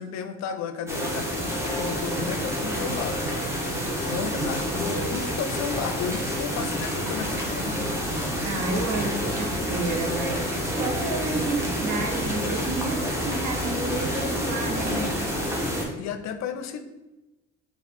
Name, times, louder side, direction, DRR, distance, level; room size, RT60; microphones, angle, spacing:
voice 1, 0.0-3.5 4.1-8.0 14.9-15.1 16.0-16.8, left 7 dB, 65° left, 8 dB, 0.5 m, -33 dB
sound 1, 0.9-15.9, equal, 10° right, 1.0 m, -28 dB
sound 2, 2.9-14.3, right 3 dB, 35° right, 0.6 m, -42 dB
voice 2, 8.4-15.1, right 3 dB, 70° right, 2 dB, 0.8 m, -31 dB
3.4 x 2.4 x 4.1 m, 1.0 s
cardioid pair, 85°, 29 cm